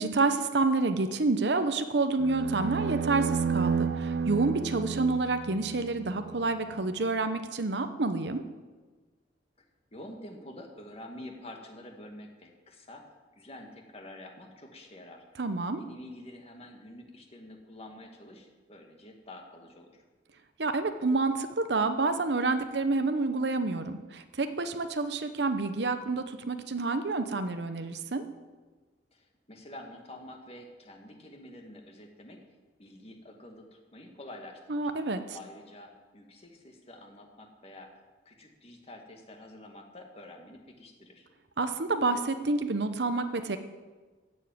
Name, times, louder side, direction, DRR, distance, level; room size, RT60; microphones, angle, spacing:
voice 1, 0.0-8.4 15.4-15.8 20.6-28.2 34.7-35.2 41.6-43.6, right 3 dB, 70° right, 9 dB, 0.9 m, -28 dB
sound 1, 2.2-6.5, right 5 dB, 85° right, 0.5 m, -31 dB
voice 2, 9.9-13.1 13.4-15.2 15.8-20.0 29.1-32.4 32.8-33.7 33.9-34.9 35.3-37.9 38.3-41.3, left 1 dB, 35° left, 3 dB, 2.1 m, -48 dB
15.0 x 7.4 x 9.2 m, 1.3 s
head